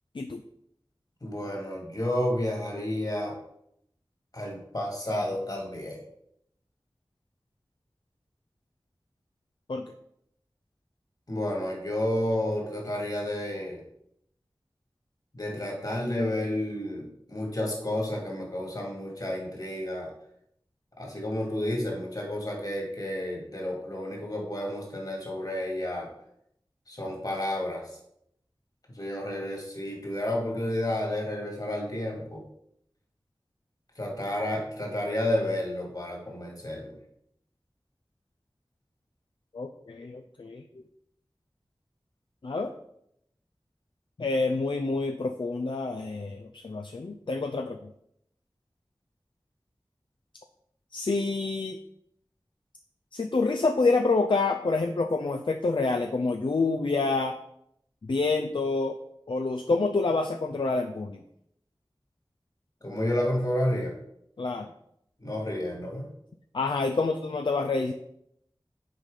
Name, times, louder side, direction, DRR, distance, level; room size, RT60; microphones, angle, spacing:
voice 1, 1.2-3.4 4.3-6.0 11.3-13.8 15.3-20.1 21.0-26.1 26.9-27.9 28.9-32.4 34.0-37.0 62.8-64.0 65.2-66.1, left 1 dB, 45° left, -1 dB, 2.2 m, -31 dB
voice 2, 39.5-40.6 42.4-42.7 44.2-47.9 50.9-51.8 53.1-57.4 58.0-59.0 59.3-61.2 64.4-64.7 66.5-67.9, left 3 dB, 65° left, 5 dB, 0.5 m, -27 dB
6.3 x 4.2 x 4.9 m, 0.74 s
wide cardioid pair, 45°, 9 cm